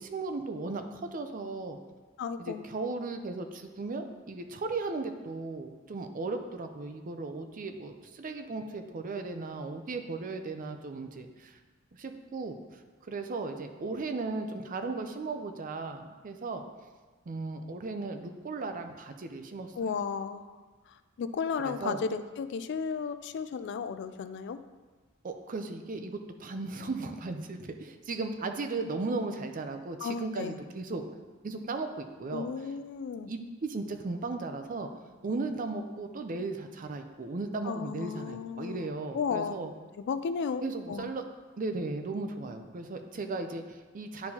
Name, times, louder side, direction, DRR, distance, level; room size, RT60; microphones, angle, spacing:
voice 1, 0.0-1.8 2.4-11.6 11.9-16.6 17.3-19.9 21.6-22.0 25.2-31.0 31.4-32.5 33.3-34.9 35.2-39.7 40.6-41.2 41.6-44.3, right 3 dB, 40° right, 6 dB, 0.5 m, -36 dB
voice 2, 2.2-2.7 19.8-20.6 21.2-24.6 30.0-30.6 32.3-33.3 37.6-39.5 40.1-40.6 40.9-41.1, left 6 dB, 55° left, 11 dB, 0.3 m, -34 dB
10.5 x 4.4 x 2.8 m, 1.3 s
head